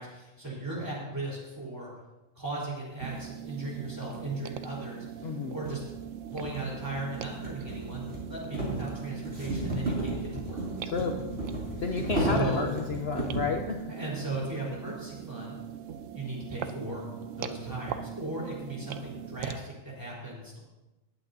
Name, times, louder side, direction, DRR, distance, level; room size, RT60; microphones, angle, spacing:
voice 1, 0.0-1.9 2.4-5.8 6.3-10.6 11.8-12.7 13.9-15.6 16.1-17.0 17.4-20.6, right 2 dB, 15° right, -5 dB, 4.2 m, -37 dB
sound 1, 3.0-19.6, right 10 dB, 75° right, 1.0 m, -41 dB
sound 2, 4.8-4.9 5.6-13.6, right 1 dB, 50° right, 3.5 m, -34 dB
voice 2, 5.2-5.5 10.9-11.2 11.8-13.8, left 5 dB, 55° left, 3 dB, 0.9 m, -31 dB
19.0 x 8.9 x 2.8 m, 1.0 s
omnidirectional pair, 1.4 m